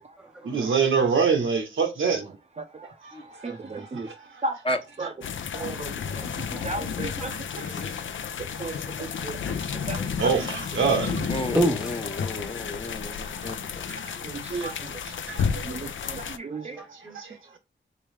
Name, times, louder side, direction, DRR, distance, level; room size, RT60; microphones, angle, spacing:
voice 1, 0.4-2.2 3.4-4.1 5.0-5.1 7.3-7.9 8.7-8.8 10.2-11.5 13.9-14.2 14.5-14.7 15.0-15.7 17.1-17.6, right 5 dB, 80° right, 1.1 m, -26 dB
voice 2, 3.4-4.1 4.4-4.6 5.0-5.1 5.5-5.9 6.6-7.3 8.6-9.6 9.9-10.0 11.1-11.4 14.2-14.7 15.6-16.8, right 3 dB, 35° right, 0.5 m, -34 dB
sound 1, 5.2-16.4, left 7 dB, 75° left, 0.5 m, -32 dB
voice 3, 6.2-6.7 7.0-7.3 9.4-10.1 11.5-12.5 15.8-16.4 16.8-17.2, equal, 5° right, 0.8 m, -31 dB
voice 4, 11.3-13.5, left 1 dB, 25° left, 0.7 m, -32 dB
3.5 x 3.0 x 3.3 m
wide cardioid pair, 90°, 20 cm